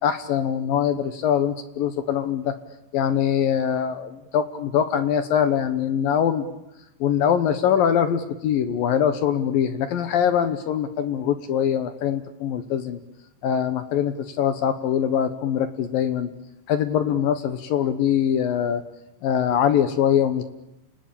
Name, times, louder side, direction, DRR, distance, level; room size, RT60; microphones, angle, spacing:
voice 1, 0.0-2.5 2.9-6.5 7.0-13.0 13.4-16.3 16.7-18.8 19.2-20.4, left 9 dB, 70° left, 11 dB, 2.3 m, -23 dB
29.5 x 19.5 x 8.8 m, 0.92 s
omnidirectional pair, 5.4 m